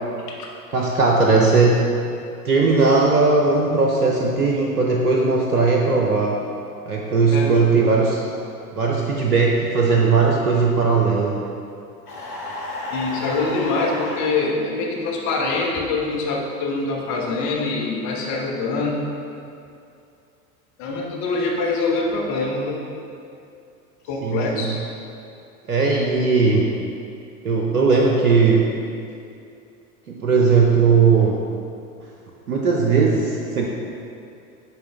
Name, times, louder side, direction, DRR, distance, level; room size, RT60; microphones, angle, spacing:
voice 1, 0.7-1.9 2.4-6.4 6.9-8.2 8.8-11.4 24.2-24.7 25.7-26.7 27.4-28.7 30.1-31.4 32.5-33.6, right 4 dB, 80° right, -1 dB, 0.7 m, -18 dB
voice 2, 7.3-7.6 12.9-19.0 20.8-22.8 24.1-24.9, left 3 dB, 40° left, -1 dB, 1.3 m, -24 dB
sound 1, 12.1-14.3, left 1 dB, 90° left, 1.5 m, -32 dB
10.5 x 4.0 x 3.5 m, 2.5 s
figure-of-eight pair, 80°, 44 cm